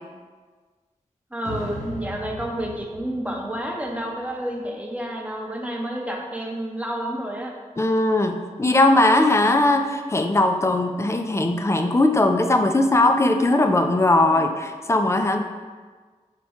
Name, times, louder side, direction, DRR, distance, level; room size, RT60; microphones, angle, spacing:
voice 1, 1.3-7.5 14.3-14.4, right 1 dB, 10° right, 0 dB, 0.7 m, -30 dB
sound 1, 1.4-4.6, left 1 dB, 55° left, 1.0 m, -38 dB
voice 2, 7.8-15.4, left 2 dB, 20° left, 5 dB, 0.4 m, -19 dB
4.3 x 2.2 x 4.3 m, 1.5 s
cardioid pair, 40°, 14 cm